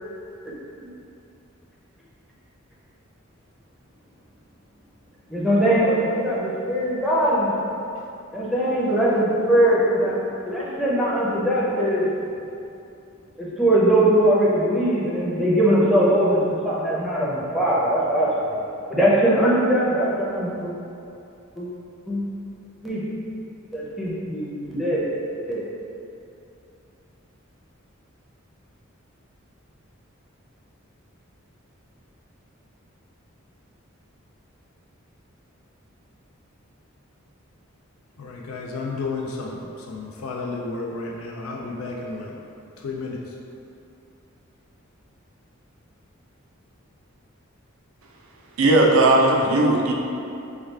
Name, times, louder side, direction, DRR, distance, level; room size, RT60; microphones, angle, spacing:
voice 1, 5.3-7.6 8.3-10.2 10.4-12.1 13.4-18.6 18.9-20.7 21.6-21.7 22.1-22.2 22.8-23.0 23.7-25.0 25.5-25.6, right 1 dB, ahead, 0.6 m, -21 dB
voice 2, 38.2-42.3 42.8-43.3, left 3 dB, 80° left, 0.4 m, -32 dB
voice 3, 48.6-49.9, right 2 dB, 80° right, 0.5 m, -17 dB
4.5 x 2.3 x 3.2 m
head